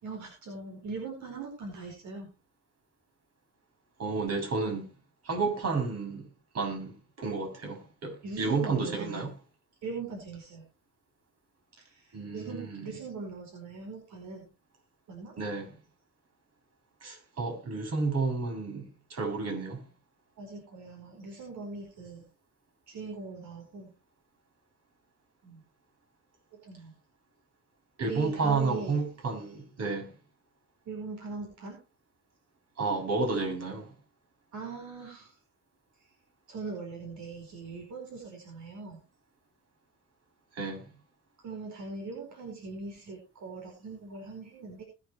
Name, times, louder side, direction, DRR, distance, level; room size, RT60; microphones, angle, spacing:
voice 1, 0.0-2.3 8.2-9.3 9.8-10.6 11.8-14.5 15.1-15.3 20.4-22.3 22.9-23.9 25.4-25.6 26.5-26.9 28.0-29.0 30.8-31.8 34.5-35.3 36.0-36.1 36.5-39.0 41.4-44.8, right 4 dB, 70° right, 5.0 m, -41 dB
voice 2, 4.0-4.8 5.2-6.2 6.5-9.3 12.1-12.9 15.4-15.7 17.0-19.8 28.0-30.1 32.8-33.9 40.6-40.8, right 4 dB, 55° right, 7.4 m, -31 dB
21.0 x 8.8 x 3.1 m
cardioid pair, 90°, 30 cm